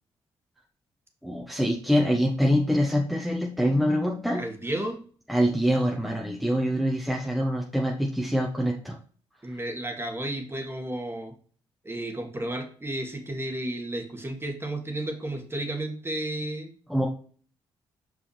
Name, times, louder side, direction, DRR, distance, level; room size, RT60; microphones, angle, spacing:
voice 1, 1.2-4.4 5.3-8.9 16.9-17.1, equal, ahead, -1 dB, 1.3 m, -25 dB
voice 2, 4.3-5.0 9.4-11.3 11.8-16.7, right 1 dB, 20° right, 3 dB, 2.0 m, -32 dB
5.5 x 5.2 x 3.4 m, 0.44 s
hypercardioid pair, 50°, 11 cm